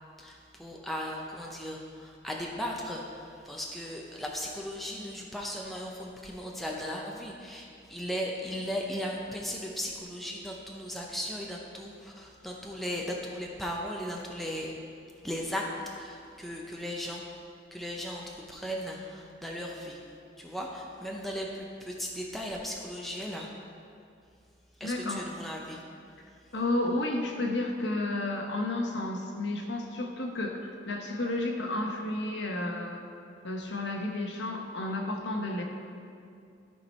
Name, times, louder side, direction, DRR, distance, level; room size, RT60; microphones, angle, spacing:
voice 1, 0.2-14.8 15.2-17.2 17.7-20.0 20.4-23.5 24.8-25.8, equal, ahead, -2 dB, 0.6 m, -37 dB
voice 2, 24.8-25.2 26.5-33.0 33.4-35.6, left 2 dB, 65° left, 2 dB, 0.9 m, -32 dB
13.5 x 4.5 x 4.3 m, 2.4 s
head